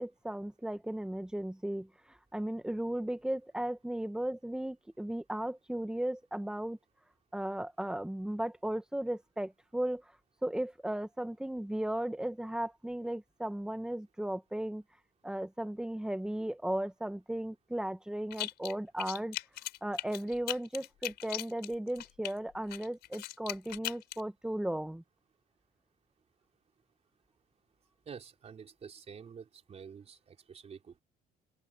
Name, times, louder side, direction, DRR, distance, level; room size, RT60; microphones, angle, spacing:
voice 1, 0.0-1.9 2.3-6.8 7.3-10.0 10.4-14.8 15.2-19.4 19.8-25.0, right 1 dB, 5° right, 1.5 m, -36 dB
sound 1, 18.3-18.7 19.0-22.3 22.7-24.2, left 15 dB, 80° left, 4.5 m, -39 dB
voice 2, 28.1-31.0, right 6 dB, 40° right, 4.1 m, -49 dB
open air
cardioid pair, 110°, 17 cm